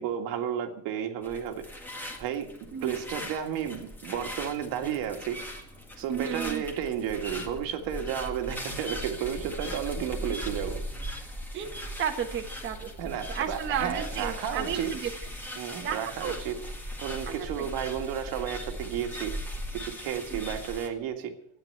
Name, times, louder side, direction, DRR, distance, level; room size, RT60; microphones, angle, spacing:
voice 1, 0.0-1.6 2.2-2.5 2.8-5.4 6.0-10.8 13.0-14.9 15.6-16.6 17.0-19.3 19.7-21.3, right 9 dB, 80° right, 4 dB, 1.9 m, -32 dB
sound 1, 1.2-20.9, equal, 5° left, 1.8 m, -39 dB
voice 2, 6.1-6.6 11.5-12.9 13.3-15.1 15.8-16.4 17.3-17.7 20.3-20.4, right 8 dB, 35° right, 3 dB, 1.3 m, -33 dB
13.0 x 9.7 x 7.8 m, 0.75 s
cardioid pair, 180°, 34 cm